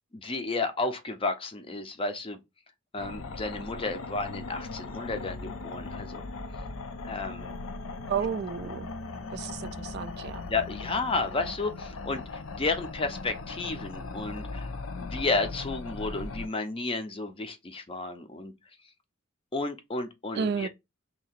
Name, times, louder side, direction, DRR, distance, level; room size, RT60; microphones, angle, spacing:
voice 1, 0.1-2.4 2.9-6.2 7.1-7.6 10.4-12.2 12.6-14.7 15.0-18.5 19.5-20.7, left 3 dB, 25° left, 0.6 m, -32 dB
sound 1, 3.0-16.5, left 3 dB, 80° left, 0.6 m, -39 dB
voice 2, 8.1-8.9 9.3-10.5 20.3-20.7, right 6 dB, 50° right, 0.3 m, -32 dB
2.8 x 2.8 x 4.3 m
head